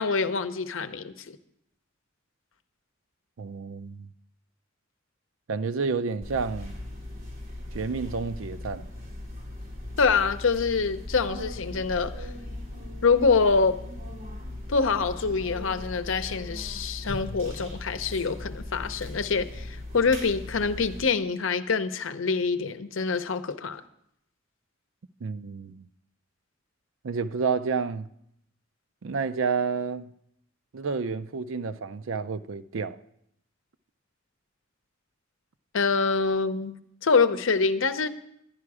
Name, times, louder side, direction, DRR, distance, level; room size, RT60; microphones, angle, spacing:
voice 1, 0.0-1.4 10.0-12.3 13.0-13.8 14.7-23.8 35.7-38.1, left 4 dB, 80° left, 0.7 m, -25 dB
voice 2, 3.4-4.1 5.5-6.7 7.7-8.9 25.2-25.9 27.0-28.1 29.0-30.1 30.7-33.0, right 5 dB, 85° right, 0.5 m, -30 dB
sound 1, 6.2-21.0, left 1 dB, 45° right, 2.9 m, -38 dB
11.0 x 10.5 x 4.8 m
head